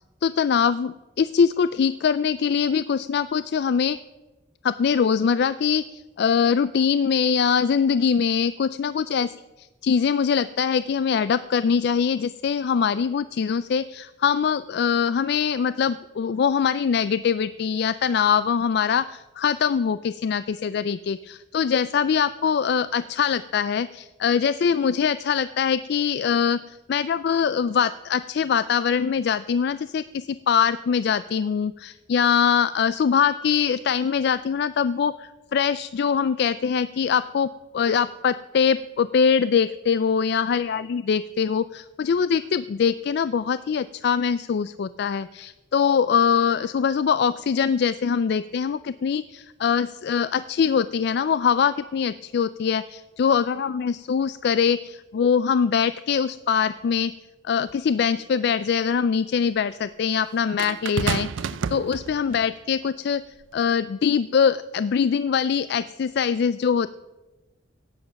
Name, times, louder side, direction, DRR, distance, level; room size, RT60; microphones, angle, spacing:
voice 1, 0.2-4.0 4.6-9.3 9.6-26.6 26.9-57.1 57.4-63.2 63.5-66.9, left 7 dB, 60° left, 14 dB, 0.3 m, -23 dB
sound 1, 57.7-57.8 60.6-62.5 63.4-63.6, right 6 dB, 85° right, 0.4 m, -29 dB
17.0 x 7.8 x 5.8 m, 1.1 s
head